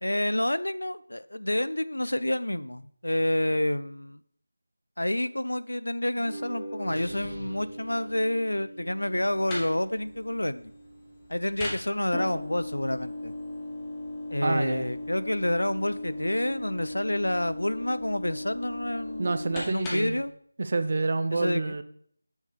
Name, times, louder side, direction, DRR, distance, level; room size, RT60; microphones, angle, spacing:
voice 1, 0.0-4.2 5.0-10.7 11.3-13.3 14.3-19.3 19.7-20.3 21.3-21.7, left 1 dB, 80° left, 15 dB, 0.4 m, -28 dB
sound 1, 6.1-12.6, right 1 dB, 10° right, 3.8 m, -44 dB
sound 2, 6.8-8.9, equal, 65° right, 2.2 m, -47 dB
sound 3, 9.1-20.3, left 2 dB, 10° left, 1.1 m, -38 dB
voice 2, 14.4-14.9 19.2-20.2 20.6-21.8, right 3 dB, 40° right, 12 dB, 0.5 m, -28 dB
8.5 x 6.3 x 3.4 m, 0.63 s
figure-of-eight pair, 165°, 0 cm